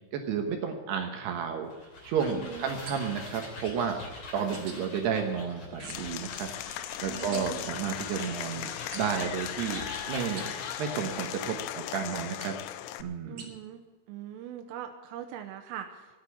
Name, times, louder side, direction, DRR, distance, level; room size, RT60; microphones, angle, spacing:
voice 1, 0.1-1.7 2.0-4.0 4.3-6.5 7.0-12.5 13.0-13.5, right 7 dB, 70° right, 4 dB, 2.8 m, -32 dB
sound 1, 1.6-11.7, left 2 dB, 35° left, 3.2 m, -44 dB
voice 2, 2.3-2.7 7.0-7.7 13.3-13.8 14.1-16.2, right 10 dB, 90° right, 4 dB, 3.4 m, -41 dB
sound 2, 2.8-3.3 4.5-4.8 5.8-6.2 7.2-7.4 8.9-9.3 10.2-10.5 12.4-12.6 13.4-13.5, right 4 dB, 50° right, 1.6 m, -45 dB
Applause / Crowd, 5.9-13.0, left 14 dB, 85° left, 2.9 m, -38 dB
13.5 x 9.9 x 8.5 m, 1.4 s
omnidirectional pair, 5.8 m